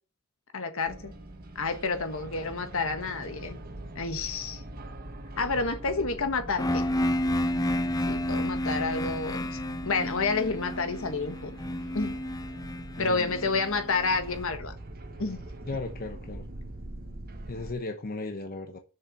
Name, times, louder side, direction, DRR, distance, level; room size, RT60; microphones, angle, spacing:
voice 1, 0.5-1.1 1.5-3.6 3.9-4.6 5.4-6.8 8.1-11.6 11.9-12.2 13.0-14.7 15.2-15.4, left 4 dB, 65° left, 1.4 m, -29 dB
sound 1, 0.9-17.7, right 1 dB, 45° right, 1.3 m, -43 dB
sound 2, 6.6-14.4, left 1 dB, 15° left, 0.6 m, -31 dB
voice 2, 13.0-13.6 15.7-16.4 17.5-18.8, left 3 dB, 45° left, 0.9 m, -36 dB
6.9 x 6.7 x 5.8 m
head